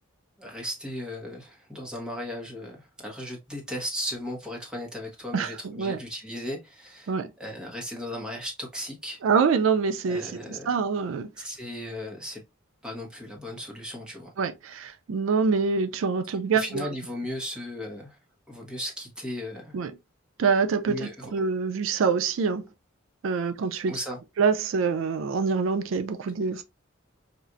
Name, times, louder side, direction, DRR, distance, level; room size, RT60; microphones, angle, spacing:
voice 1, 0.4-7.1 7.4-9.2 10.1-10.7 11.4-12.4 12.8-14.3 16.5-18.2 18.5-19.8 20.9-21.3 23.9-24.2, left 1 dB, 5° right, 1.1 m, -36 dB
voice 2, 5.3-6.0 7.1-7.3 9.2-11.3 14.4-16.8 19.7-19.9 20.4-22.6 23.2-24.0 24.4-26.6, right 5 dB, 70° right, 0.4 m, -25 dB
4.3 x 2.4 x 2.4 m
head